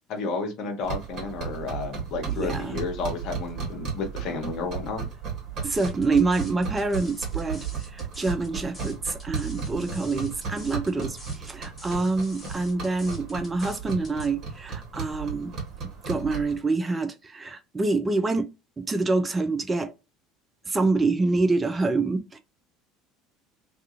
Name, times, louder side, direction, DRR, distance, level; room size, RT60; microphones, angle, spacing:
voice 1, 0.1-5.1, left 4 dB, 55° left, 0.7 m, -32 dB
sound 1, 0.8-16.6, right 6 dB, 45° right, 1.2 m, -35 dB
voice 2, 2.3-2.8 5.6-15.5 16.1-18.5 18.8-19.9 20.7-22.4, right 3 dB, 20° right, 0.4 m, -26 dB
sound 2, 5.7-14.3, left 1 dB, 10° left, 1.4 m, -47 dB
2.4 x 2.3 x 2.8 m
figure-of-eight pair, 65°, 0 cm